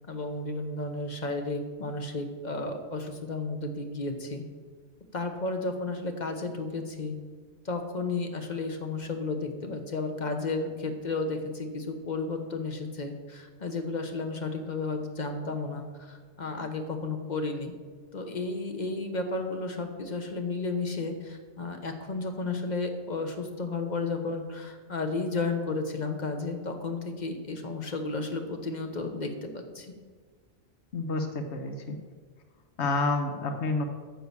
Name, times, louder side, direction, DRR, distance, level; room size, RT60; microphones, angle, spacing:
voice 1, 0.1-4.4 5.1-7.2 7.6-17.7 18.1-29.9, left 3 dB, 45° left, 5 dB, 1.1 m, -33 dB
voice 2, 30.9-32.0 32.8-33.8, left 3 dB, 85° left, 6 dB, 1.2 m, -29 dB
9.5 x 6.2 x 6.9 m, 1.5 s
omnidirectional pair, 1.1 m